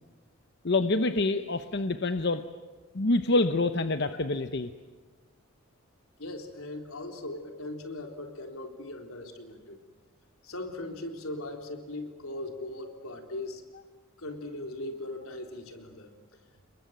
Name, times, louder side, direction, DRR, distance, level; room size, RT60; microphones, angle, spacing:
voice 1, 0.6-2.4 2.9-4.7, left 2 dB, 50° left, 9 dB, 0.9 m, -26 dB
voice 2, 6.2-9.8 10.4-13.6 14.2-16.1, left 2 dB, 80° left, 4 dB, 3.8 m, -39 dB
28.5 x 22.5 x 9.3 m, 1.3 s
head